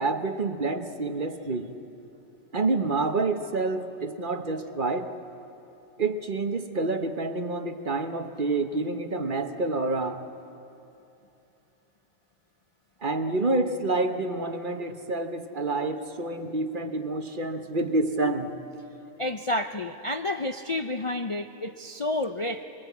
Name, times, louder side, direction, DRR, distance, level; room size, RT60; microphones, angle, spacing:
voice 1, 0.0-1.7 2.5-5.1 6.0-10.2 13.0-18.5, right 3 dB, 40° right, 7 dB, 1.1 m, -28 dB
voice 2, 19.2-22.6, left 2 dB, 35° left, 4 dB, 0.5 m, -30 dB
25.5 x 22.0 x 8.4 m, 2.8 s
omnidirectional pair, 1.3 m